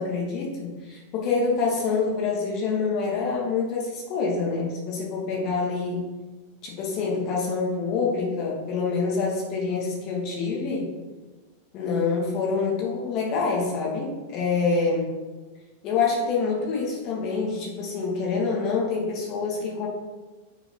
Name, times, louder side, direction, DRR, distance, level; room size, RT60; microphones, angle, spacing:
voice 1, 0.0-6.0 6.6-10.9 11.7-15.1 15.8-19.9, left 4 dB, 40° left, -2 dB, 2.7 m, -26 dB
8.3 x 6.8 x 4.1 m, 1.3 s
figure-of-eight pair, 90°, 0 cm